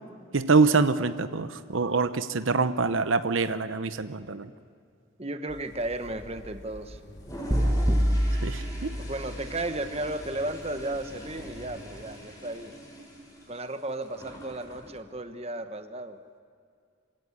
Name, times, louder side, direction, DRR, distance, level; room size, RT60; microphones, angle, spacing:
voice 1, 0.3-4.5 8.4-9.0, right 4 dB, 75° right, 11 dB, 0.9 m, -25 dB
voice 2, 5.2-7.0 9.0-12.7 13.5-16.2, right 1 dB, 30° right, 9 dB, 1.2 m, -34 dB
sound 1, 5.5-12.0, equal, 55° left, 3.5 m, -47 dB
Toilet flush, 7.1-15.0, equal, 15° left, 4.5 m, -44 dB
sound 2, 7.5-9.7, equal, 15° right, 1.0 m, -26 dB
26.5 x 17.0 x 9.9 m, 2.3 s
head